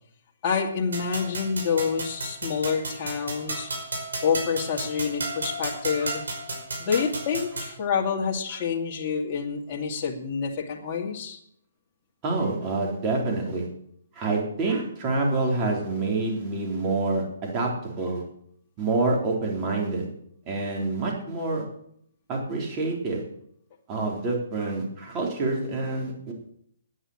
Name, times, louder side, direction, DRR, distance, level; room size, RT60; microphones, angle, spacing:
voice 1, 0.4-3.7 4.2-6.2 6.8-11.4, left 6 dB, 30° left, -1 dB, 2.4 m, -27 dB
sound 1, 0.9-7.8, right 2 dB, 90° right, 5.1 m, -34 dB
voice 2, 12.2-13.7 14.2-18.2 18.8-20.1 20.5-21.6 22.3-23.2 23.9-26.3, right 3 dB, 25° right, -1 dB, 3.7 m, -27 dB
9.9 x 9.5 x 8.6 m, 0.68 s
hypercardioid pair, 155°, 0 cm